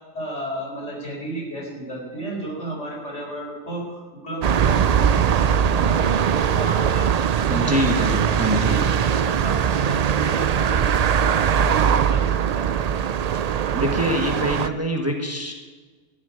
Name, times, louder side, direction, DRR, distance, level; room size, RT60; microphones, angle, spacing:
voice 1, 0.1-7.2 7.5-11.0 11.6-12.7, right 1 dB, 70° left, -3 dB, 4.8 m, -33 dB
sound 1, 4.4-14.7, right 8 dB, 75° right, 0.3 m, -21 dB
voice 2, 7.5-8.7 13.7-15.5, equal, 10° right, 2 dB, 1.5 m, -24 dB
14.0 x 7.4 x 9.4 m, 1.4 s
omnidirectional pair, 1.3 m